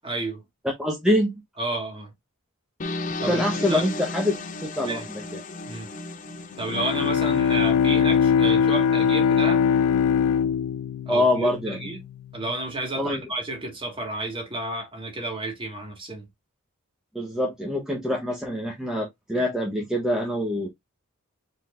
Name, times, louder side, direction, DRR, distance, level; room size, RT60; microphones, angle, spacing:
voice 1, 0.0-0.4 1.6-2.1 3.2-3.8 4.8-5.1 5.6-5.9 6.6-9.7 11.1-12.0 12.3-16.3, right 2 dB, 25° right, 1.9 m, -31 dB
voice 2, 0.8-1.3 3.3-5.0 5.3-5.4 11.1-11.8 12.9-13.2 17.1-20.7, left 1 dB, 5° right, 1.0 m, -25 dB
sound 1, 2.8-7.7, left 2 dB, 35° left, 0.6 m, -34 dB
Bowed string instrument, 6.5-12.2, left 7 dB, 90° left, 0.3 m, -22 dB
4.8 x 3.9 x 2.4 m
head